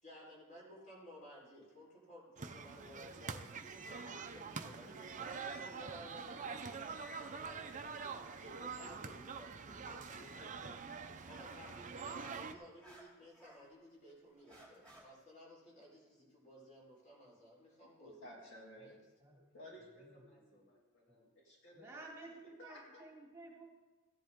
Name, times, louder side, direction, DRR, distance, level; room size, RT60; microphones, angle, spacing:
voice 1, 0.0-7.9 8.3-10.7 11.2-18.1 18.8-18.9, equal, 35° left, -4 dB, 4.4 m, -56 dB
sound 1, 2.4-12.5, right 5 dB, 35° right, 0.6 m, -45 dB
sound 2, 12.0-13.7 14.1-15.0, right 1 dB, 5° left, 2.9 m, -60 dB
voice 2, 18.0-18.9 19.5-22.3 22.6-23.0, equal, 60° left, -2 dB, 2.2 m, -56 dB
voice 3, 20.0-20.8 21.1-21.2 21.7-23.7, right 2 dB, 10° right, -2 dB, 1.8 m, -54 dB
15.0 x 10.5 x 3.7 m, 1.2 s
head